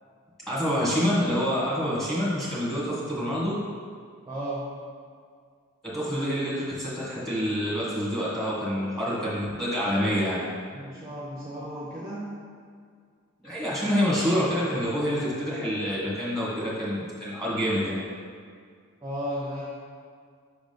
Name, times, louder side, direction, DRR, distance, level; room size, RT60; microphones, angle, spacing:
voice 1, 0.5-3.5 5.8-10.4 13.4-17.9, equal, ahead, -8 dB, 1.7 m, -27 dB
voice 2, 4.3-4.7 10.7-12.2 19.0-19.6, equal, 15° right, -7 dB, 0.8 m, -34 dB
6.2 x 3.9 x 5.2 m, 2.1 s
head